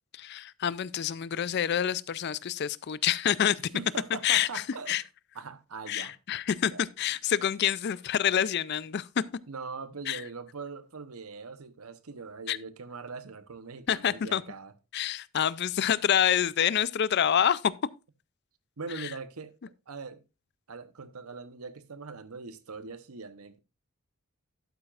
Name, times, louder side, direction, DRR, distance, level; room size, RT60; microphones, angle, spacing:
voice 1, 0.2-3.6 4.2-4.5 4.9-5.0 5.9-9.2 10.1-10.2 12.5-12.6 13.9-14.4 14.9-17.7 19.0-19.1, left 9 dB, 45° left, 0.4 m, -27 dB
voice 2, 3.7-5.0 5.3-6.2 6.7-6.8 9.5-14.7 18.8-19.5 19.9-20.2 20.7-23.6, right 4 dB, 80° right, 0.9 m, -41 dB
11.5 x 9.0 x 2.4 m
head